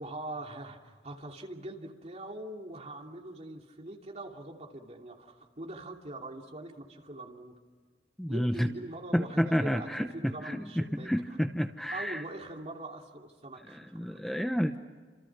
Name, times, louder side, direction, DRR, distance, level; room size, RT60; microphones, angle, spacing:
voice 1, 0.0-7.5 8.3-11.1 11.9-14.2, right 1 dB, 40° right, 1 dB, 2.9 m, -42 dB
voice 2, 8.2-8.7 9.1-12.2 13.7-14.8, equal, ahead, 6 dB, 0.9 m, -30 dB
29.5 x 27.0 x 6.1 m, 1.5 s
head